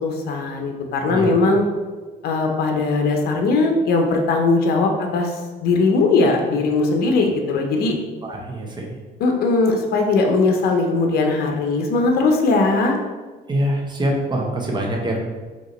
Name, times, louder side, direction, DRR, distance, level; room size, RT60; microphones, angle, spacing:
voice 1, 0.0-1.6 2.2-7.9 9.2-13.0, left 3 dB, 65° left, 2 dB, 0.8 m, -19 dB
voice 2, 8.2-9.0 13.5-15.2, right 1 dB, 25° right, 0 dB, 1.0 m, -24 dB
5.3 x 2.9 x 3.2 m, 1.4 s
cardioid pair, 110°, 17 cm